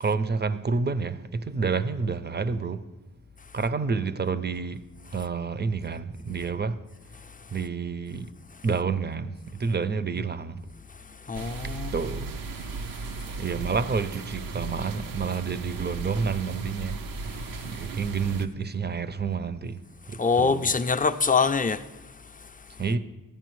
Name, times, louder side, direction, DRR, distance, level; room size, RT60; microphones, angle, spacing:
voice 1, 0.0-2.9 3.5-4.8 5.1-6.8 7.5-8.3 8.6-10.7 11.6-12.3 13.4-19.8 20.1-20.7 22.8-23.0, right 5 dB, 30° right, 0.5 m, -29 dB
voice 2, 11.1-11.9 17.6-17.9 20.1-22.8, left 5 dB, 25° left, 0.4 m, -26 dB
sound 1, 11.3-18.5, right 3 dB, 80° right, 0.5 m, -36 dB
12.0 x 8.8 x 3.1 m
cardioid pair, 50°, 34 cm